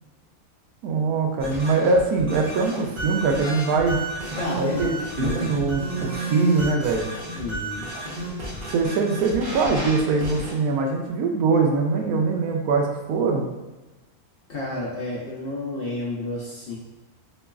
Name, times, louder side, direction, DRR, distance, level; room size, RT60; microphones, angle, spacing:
voice 1, 0.8-4.0 4.6-7.1 8.7-13.5, right 4 dB, 80° right, 1 dB, 1.0 m, -22 dB
sound 1, 1.4-10.5, right 2 dB, 40° right, 0.8 m, -32 dB
voice 2, 4.4-5.5 7.3-7.9 14.5-16.7, left 2 dB, 55° left, -6 dB, 0.7 m, -31 dB
3.9 x 3.0 x 2.3 m, 1.1 s
omnidirectional pair, 1.6 m